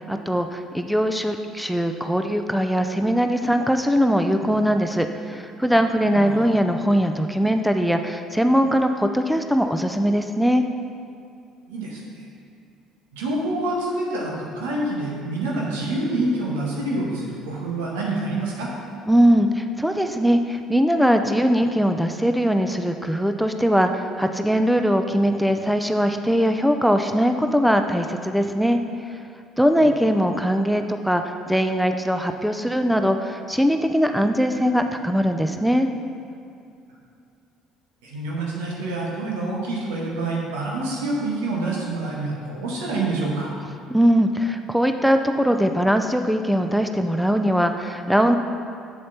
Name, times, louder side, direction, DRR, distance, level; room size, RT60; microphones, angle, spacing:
voice 1, 0.0-10.6 19.1-28.8 29.1-29.2 29.6-35.9 43.9-48.4, equal, ahead, 6 dB, 0.5 m, -21 dB
voice 2, 6.1-6.4 11.7-12.2 13.1-18.7 29.8-29.9 38.0-43.5, right 2 dB, 75° right, -3 dB, 1.8 m, -27 dB
8.1 x 7.5 x 4.2 m, 2.5 s
hypercardioid pair, 60°, 0 cm